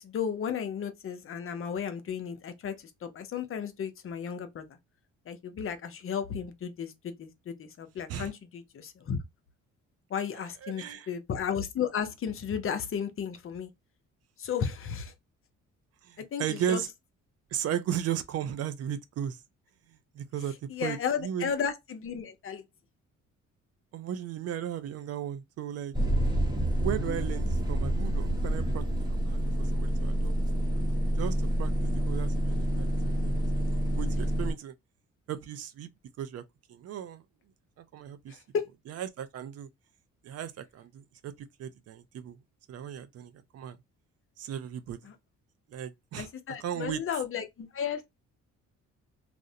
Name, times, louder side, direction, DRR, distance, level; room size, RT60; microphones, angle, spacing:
voice 1, 0.0-2.8 3.0-4.6 5.3-9.2 10.1-13.7 14.4-15.1 16.3-16.8 20.7-22.6 38.3-38.7 45.1-45.2 46.2-48.1, left 7 dB, 45° left, 0.6 m, -34 dB
voice 2, 10.6-11.1 16.0-16.9 17.5-19.4 19.9-21.5 23.9-25.9 26.8-30.3 31.1-34.7 35.3-35.9 36.2-36.4 36.7-37.2 37.8-38.4 38.9-39.7 40.2-42.4 42.7-43.8 44.4-45.0 45.7-46.3 46.6-47.0, right 9 dB, 55° right, 0.4 m, -36 dB
sound 1, 25.9-34.5, equal, 15° right, 0.8 m, -28 dB
2.4 x 2.0 x 2.7 m
cardioid pair, 90°, 30 cm